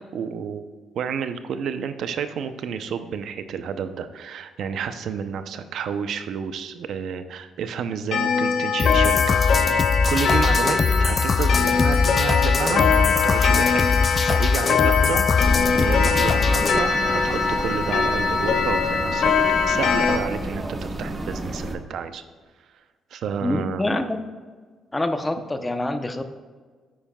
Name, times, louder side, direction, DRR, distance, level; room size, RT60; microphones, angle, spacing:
voice 1, 0.1-0.6 0.9-9.7 10.1-15.2 15.7-19.3 19.6-22.2 23.1-23.9, right 7 dB, 70° right, 10 dB, 0.6 m, -30 dB
Clock, 8.1-20.2, left 5 dB, 70° left, 0.9 m, -22 dB
sound 1, 8.8-16.8, left 4 dB, 40° left, 0.3 m, -22 dB
sound 2, 15.4-21.8, right 1 dB, 25° right, 1.0 m, -31 dB
voice 2, 23.4-24.2 24.9-26.4, left 1 dB, 15° left, 8 dB, 0.7 m, -26 dB
9.4 x 8.9 x 2.3 m, 1.5 s
cardioid pair, 90°, 0 cm